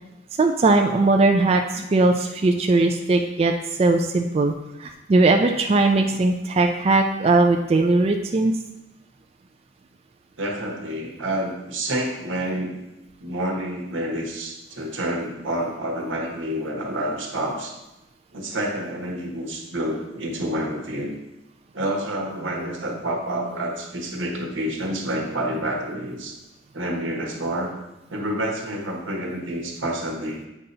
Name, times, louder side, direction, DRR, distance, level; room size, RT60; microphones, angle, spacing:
voice 1, 0.4-3.5 3.8-4.5 4.8-8.6, right 3 dB, 30° right, 4 dB, 0.3 m, -19 dB
voice 2, 10.4-12.7 13.2-17.7 18.3-21.2 21.7-26.3 26.7-27.7 28.1-30.4, right 1 dB, 90° right, 0 dB, 1.3 m, -28 dB
8.2 x 2.8 x 5.3 m, 0.98 s
head